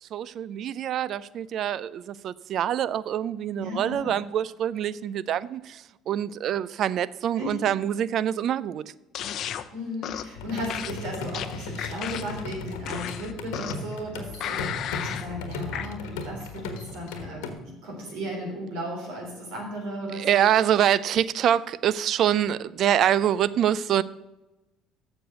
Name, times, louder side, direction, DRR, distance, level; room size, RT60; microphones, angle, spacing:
voice 1, 0.0-8.9 20.1-24.0, right 10 dB, 60° right, 19 dB, 0.4 m, -25 dB
voice 2, 3.6-4.1 7.4-7.7 9.7-20.5, equal, 80° right, 0 dB, 3.7 m, -35 dB
sound 1, 9.1-9.7 10.0-10.3 10.7-12.4 12.9-13.9 14.4-15.3 15.7-15.9, left 10 dB, 60° left, 0.6 m, -34 dB
sound 2, 10.3-17.5, left 3 dB, 85° left, 1.3 m, -36 dB
7.6 x 6.5 x 8.1 m, 1.0 s
supercardioid pair, 75°, 0 cm